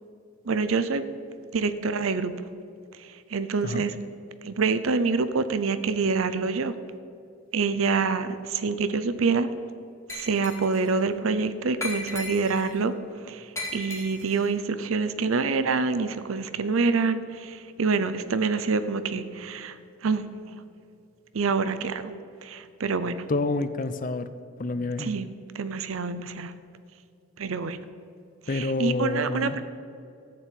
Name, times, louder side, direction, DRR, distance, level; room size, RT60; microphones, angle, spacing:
voice 1, 0.5-1.0 1.5-2.3 3.3-3.9 4.4-6.7 7.5-9.5 10.1-12.9 13.3-20.3 21.3-22.1 22.4-23.3 25.0-25.3 25.5-26.5 27.4-27.8 28.5-29.6, right 4 dB, 80° right, 12 dB, 0.6 m, -26 dB
Glass, 10.1-10.9 11.8-12.7 13.6-14.4, left 2 dB, 15° left, 2.3 m, -36 dB
voice 2, 23.3-24.3 24.6-25.1 28.5-29.6, left 2 dB, 40° left, 12 dB, 0.5 m, -28 dB
13.5 x 4.6 x 8.6 m, 2.4 s
head